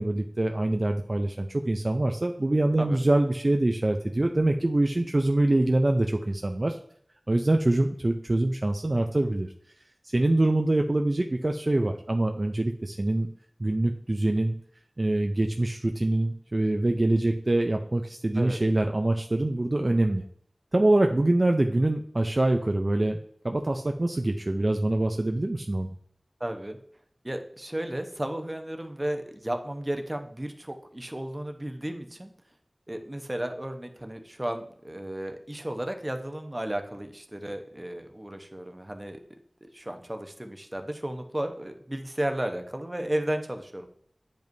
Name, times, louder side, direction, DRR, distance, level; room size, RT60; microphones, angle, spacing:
voice 1, 0.0-6.8 7.3-9.5 10.0-13.3 13.6-14.6 15.0-20.2 20.7-23.2 23.4-25.9, right 1 dB, 45° right, 4 dB, 0.5 m, -24 dB
voice 2, 26.4-26.8 27.2-32.3 32.9-39.2 39.6-43.9, right 1 dB, 25° right, 5 dB, 0.9 m, -33 dB
9.0 x 5.2 x 2.7 m, 0.63 s
wide cardioid pair, 45°, 0 cm